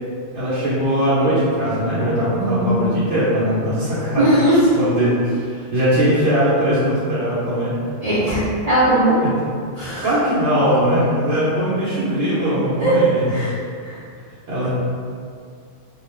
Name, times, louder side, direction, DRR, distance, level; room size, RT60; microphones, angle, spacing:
voice 1, 0.3-4.2 4.8-7.7 9.2-9.3 10.0-13.3 14.5-14.7, equal, 80° right, -11 dB, 1.0 m, -20 dB
voice 2, 2.3-2.8 4.2-4.6 5.0-5.1 8.0-9.2 9.8-10.1 12.8-12.9 13.3-13.5 13.8-14.0, right 1 dB, 40° right, -11 dB, 0.6 m, -19 dB
2.4 x 2.3 x 3.1 m, 2.2 s
omnidirectional pair, 1.2 m